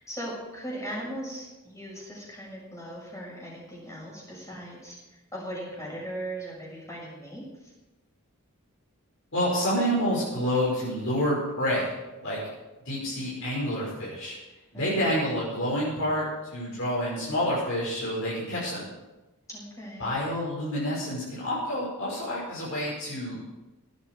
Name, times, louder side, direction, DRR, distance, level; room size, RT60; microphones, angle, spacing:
voice 1, 0.0-4.9 5.3-7.7 14.7-15.0 19.5-20.2, right 1 dB, 15° left, -4 dB, 6.3 m, -38 dB
voice 2, 9.3-11.9 12.2-12.4 12.9-14.3 14.7-16.2 16.5-18.9 20.0-23.4, equal, 65° left, -7 dB, 5.9 m, -28 dB
18.0 x 12.0 x 4.9 m, 1.1 s
head